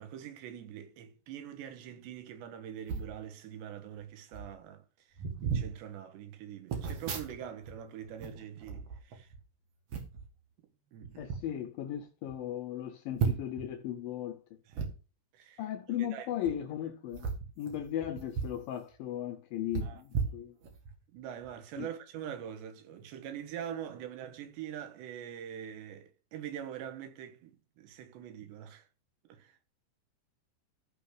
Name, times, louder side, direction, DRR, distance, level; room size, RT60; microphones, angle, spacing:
voice 1, 0.0-9.3 10.9-11.1 14.7-15.0 15.3-15.6 16.0-16.4 19.8-20.0 21.1-28.9 29.3-29.6, right 9 dB, 85° right, 3.5 m, -44 dB
sound 1, 2.8-3.1 4.0-4.1 4.3-4.6 5.1-5.7 6.7-7.7 8.0-9.4 9.9-10.3 11.0-11.4 11.9-12.0 12.3-12.4 13.2-13.6 14.7-14.9 16.3-16.5 17.1-18.6 18.9-19.0 19.7-20.9 21.4-21.6, right 6 dB, 50° right, 2.0 m, -35 dB
voice 2, 11.2-14.4 15.6-17.3 17.6-20.6 21.8-21.9, left 11 dB, 75° left, 2.1 m, -37 dB
14.5 x 6.2 x 3.8 m
omnidirectional pair, 4.9 m